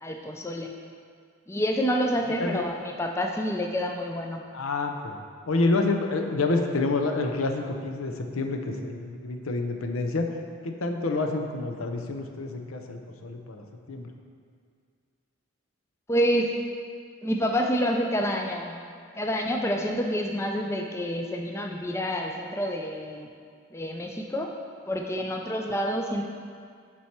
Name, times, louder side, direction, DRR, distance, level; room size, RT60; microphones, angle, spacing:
voice 1, 0.0-0.8 1.5-4.4 16.1-16.6 17.2-18.7 19.1-23.3 23.7-24.5 24.9-26.2, equal, 15° left, 2 dB, 0.3 m, -28 dB
voice 2, 4.5-5.2 5.5-10.3 10.6-14.1, left 3 dB, 90° left, 4 dB, 0.6 m, -28 dB
7.2 x 4.6 x 4.4 m, 2.2 s
head